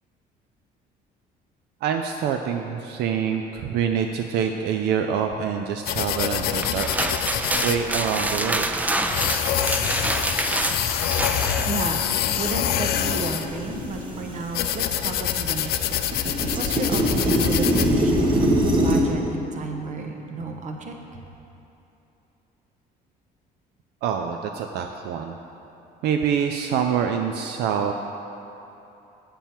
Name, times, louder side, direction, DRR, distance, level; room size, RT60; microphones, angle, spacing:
voice 1, 1.8-6.9 7.4-8.7 24.0-25.3 26.0-27.9, right 7 dB, 80° right, 4 dB, 0.4 m, -26 dB
sound 1, 5.9-17.9, left 10 dB, 65° left, 0.4 m, -26 dB
sound 2, 6.4-11.7, right 2 dB, 10° right, 0.3 m, -26 dB
sound 3, 11.2-11.3 11.7-14.7 15.0-19.0, equal, 30° right, 1.1 m, -24 dB
voice 2, 11.6-16.0 16.3-18.5 18.8-20.9, right 3 dB, 45° right, 3 dB, 0.9 m, -32 dB
7.3 x 6.9 x 4.4 m, 2.9 s
cardioid pair, 110°, 17 cm